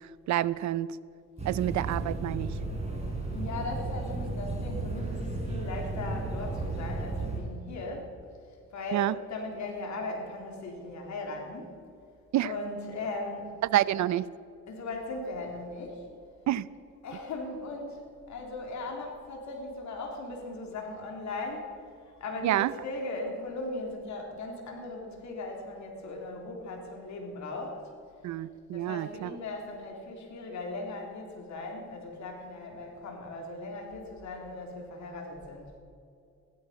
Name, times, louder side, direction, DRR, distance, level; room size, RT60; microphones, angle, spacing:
voice 1, 0.3-0.9 1.5-2.5 8.9-9.1 12.3-12.5 13.6-14.3 16.5-16.7 22.4-22.7 28.2-29.4, right 13 dB, 65° right, 19 dB, 0.6 m, -28 dB
sound 1, 1.4-7.4, right 2 dB, 20° right, 4.2 m, -34 dB
voice 2, 3.3-8.1 8.7-11.7 12.4-13.6 14.7-16.1 17.0-21.7 22.0-27.8 28.7-35.8, left 2 dB, 70° left, 1 dB, 3.6 m, -38 dB
15.5 x 12.5 x 5.8 m, 2.5 s
cardioid pair, 90°, 30 cm